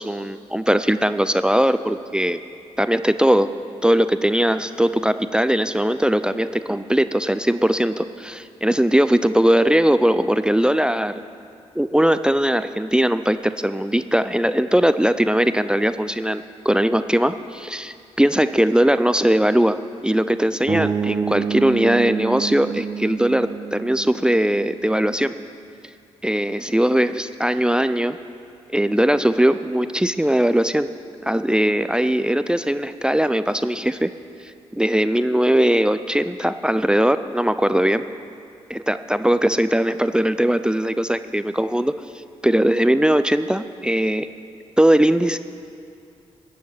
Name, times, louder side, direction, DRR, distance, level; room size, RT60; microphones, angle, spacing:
voice 1, 0.0-2.4 2.8-3.5 3.8-11.1 11.8-25.3 26.2-28.2 28.7-30.9 31.2-34.1 34.7-38.0 38.7-41.9 42.4-44.3 44.8-45.4, right 1 dB, 5° right, 12 dB, 0.5 m, -20 dB
sound 1, 20.7-24.8, right 6 dB, 40° right, 1.2 m, -28 dB
15.0 x 6.4 x 8.5 m, 2.4 s
supercardioid pair, 50°, 13 cm